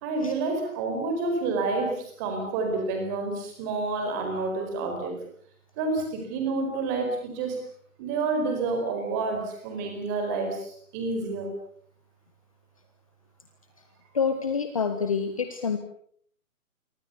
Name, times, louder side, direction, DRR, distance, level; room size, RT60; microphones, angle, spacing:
voice 1, 0.0-5.1 5.8-7.6 8.0-11.5, right 3 dB, 10° right, 4 dB, 4.6 m, -29 dB
voice 2, 14.1-15.8, left 6 dB, 25° left, 8 dB, 1.5 m, -27 dB
29.5 x 24.5 x 7.1 m, 0.63 s
hypercardioid pair, 180°, 43 cm